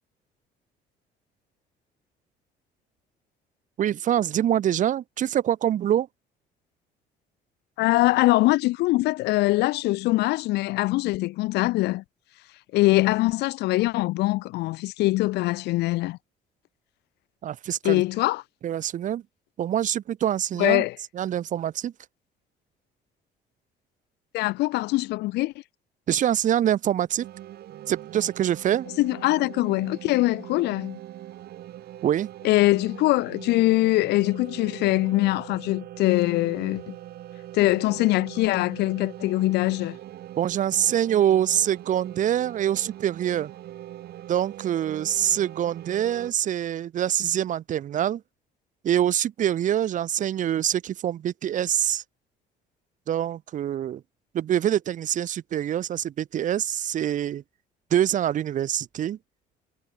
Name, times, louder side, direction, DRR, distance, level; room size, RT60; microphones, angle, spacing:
voice 1, 3.8-6.1 17.4-18.0 18.6-19.2 19.6-20.8 21.1-21.9 26.1-27.3 27.9-28.9 32.0-32.3 40.4-43.5 44.3-48.2 48.8-52.0 53.1-54.0 54.3-57.4 57.9-59.2, right 10 dB, 50° right, 0.7 m, -25 dB
voice 2, 7.8-12.0 12.7-16.2 17.8-18.4 20.6-20.9 24.3-25.5 29.0-31.0 32.4-37.0 37.5-40.0, left 19 dB, 80° left, 0.6 m, -23 dB
sound 1, 27.2-46.3, right 13 dB, 70° right, 6.4 m, -42 dB
cardioid pair, 110°, 17 cm